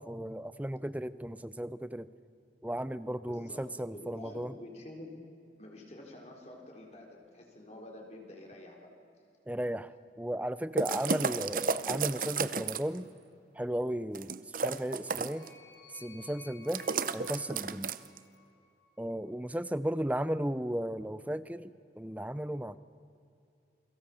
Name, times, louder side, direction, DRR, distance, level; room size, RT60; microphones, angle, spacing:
voice 1, 0.0-2.1 2.6-4.5 9.5-9.9 10.2-13.1 13.5-15.5 15.9-16.9 17.1-18.0 19.0-22.8, right 1 dB, 10° right, 15 dB, 0.6 m, -35 dB
voice 2, 3.3-5.2 5.6-8.9, left 1 dB, 35° left, 0 dB, 4.0 m, -48 dB
sound 1, 10.8-13.0 14.1-15.5 16.7-18.2, right 5 dB, 50° right, 0.8 m, -33 dB
sound 2, 14.6-18.9, left 5 dB, 70° left, 4.4 m, -57 dB
29.0 x 23.0 x 7.2 m, 2.6 s
head